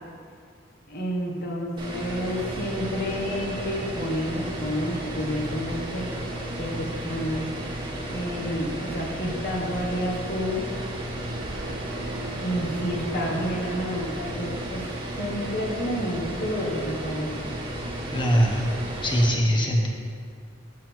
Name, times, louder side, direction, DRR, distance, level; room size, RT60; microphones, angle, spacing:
voice 1, 0.9-6.1 6.6-7.5 8.1-10.6 12.4-14.8 15.2-17.5 19.3-19.6, equal, 50° left, -2 dB, 1.3 m, -30 dB
sound 1, 1.8-19.3, right 1 dB, 25° right, 1.3 m, -33 dB
sound 2, 11.2-14.6, right 2 dB, 70° right, 0.6 m, -40 dB
voice 2, 18.1-18.7 19.0-19.9, equal, 25° left, 0 dB, 0.9 m, -21 dB
7.5 x 6.0 x 4.5 m, 2.1 s
head